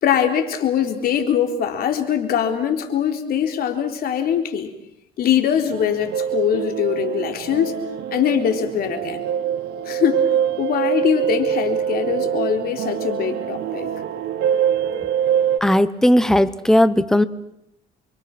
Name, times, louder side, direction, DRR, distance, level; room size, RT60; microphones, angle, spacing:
voice 1, 0.0-4.7 5.2-7.7 8.1-9.2 9.9-10.3 10.6-13.9, left 8 dB, 65° left, 5 dB, 4.0 m, -22 dB
sound 1, 5.5-15.6, right 9 dB, 90° right, 2.3 m, -24 dB
voice 2, 15.6-17.3, left 1 dB, 5° left, 13 dB, 1.2 m, -16 dB
28.0 x 24.0 x 6.2 m, 0.82 s
cardioid pair, 110°, 17 cm